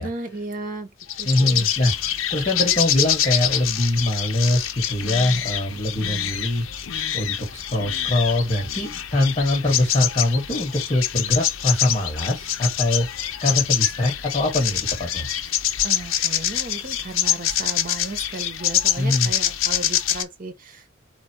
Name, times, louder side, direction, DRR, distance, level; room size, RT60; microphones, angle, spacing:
voice 1, 0.0-1.7 15.8-20.9, right 2 dB, 45° right, 1.0 m, -35 dB
sound 1, 1.0-20.2, left 11 dB, 80° left, 0.6 m, -25 dB
voice 2, 1.2-1.9 2.3-6.7 7.1-13.1 13.4-15.3 19.0-19.3, left 1 dB, 30° left, 1.7 m, -23 dB
4.2 x 2.6 x 4.6 m
head